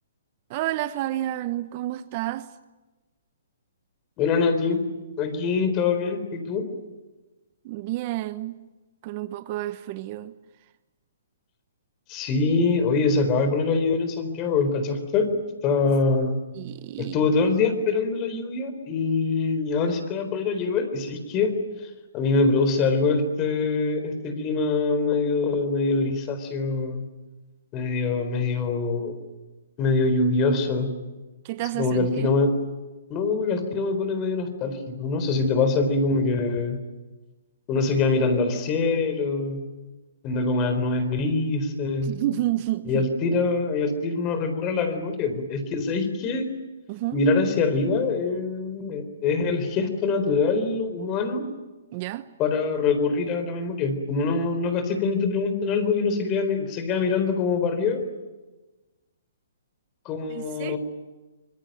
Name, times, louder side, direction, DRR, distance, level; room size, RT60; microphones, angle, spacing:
voice 1, 0.5-2.5 7.6-8.6 9.0-10.3 16.5-17.3 31.4-32.3 42.0-43.1 46.9-47.2 51.9-52.3 60.3-60.8, right 15 dB, 35° right, 0.9 m, -30 dB
voice 2, 4.2-4.8 5.2-6.6 12.1-15.3 15.6-16.4 17.0-21.5 22.1-27.0 27.7-29.2 29.8-30.9 31.7-32.5 33.1-36.8 37.7-39.6 40.2-42.1 42.8-46.5 47.1-51.4 52.4-58.0 60.1-60.8, left 4 dB, 25° left, 4.1 m, -24 dB
25.5 x 21.5 x 9.2 m
hypercardioid pair, 150°, 0 cm